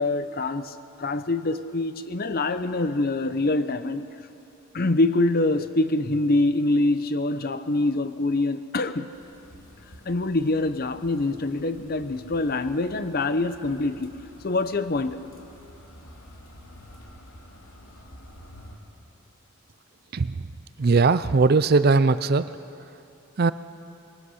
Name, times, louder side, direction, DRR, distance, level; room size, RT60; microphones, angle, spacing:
voice 1, 0.0-4.0 4.7-9.1 10.1-14.1 14.4-15.2, left 2 dB, 45° left, 11 dB, 0.7 m, -25 dB
sound 1, 9.1-18.8, equal, 70° left, 2.6 m, -49 dB
voice 2, 20.8-22.5 23.4-23.5, right 4 dB, 45° right, 14 dB, 0.4 m, -19 dB
22.0 x 19.5 x 6.4 m, 2.7 s
head